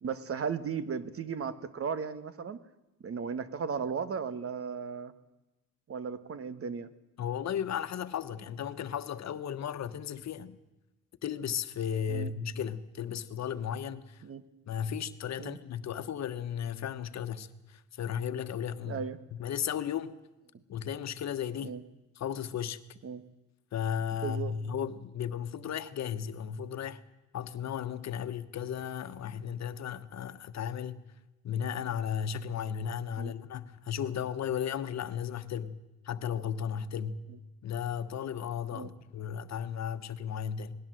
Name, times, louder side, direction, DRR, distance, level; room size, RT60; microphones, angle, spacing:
voice 1, 0.0-2.6 3.0-5.1 5.9-6.9 12.1-12.3 14.2-14.4 15.4-15.6 18.8-19.2 21.6-21.8 23.0-23.2 24.2-24.5 33.2-33.3 38.7-38.9, right 6 dB, 50° right, 1.5 m, -36 dB
voice 2, 7.2-10.6 11.2-14.2 14.7-19.1 19.3-20.1 20.7-21.7 22.2-22.8 23.7-27.0 27.3-31.0 31.4-35.8 36.0-37.2 37.6-40.7, left 8 dB, 60° left, 1.3 m, -35 dB
20.0 x 17.0 x 7.7 m
cardioid pair, 90°, 30 cm